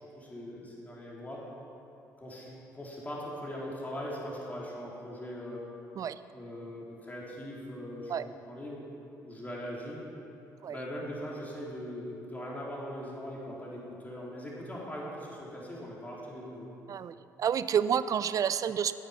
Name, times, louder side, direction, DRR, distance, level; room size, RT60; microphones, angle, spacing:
voice 1, 0.0-1.5 2.2-5.6 6.3-8.8 9.2-10.1 10.7-16.7, equal, 20° left, -4 dB, 3.8 m, -40 dB
voice 2, 16.9-18.9, right 8 dB, 40° right, 14 dB, 0.5 m, -29 dB
13.5 x 10.0 x 5.8 m, 2.7 s
figure-of-eight pair, 50°, 9 cm